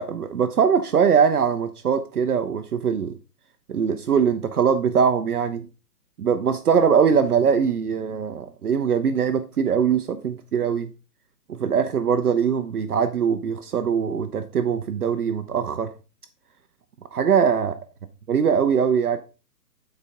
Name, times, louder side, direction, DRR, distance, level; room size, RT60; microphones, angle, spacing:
voice 1, 0.0-3.2 3.7-5.7 6.2-10.9 11.5-15.9 17.1-17.8 18.3-19.2, right 7 dB, 65° right, 0.9 m, -22 dB
10.5 x 4.5 x 3.6 m
hypercardioid pair, 160°, 49 cm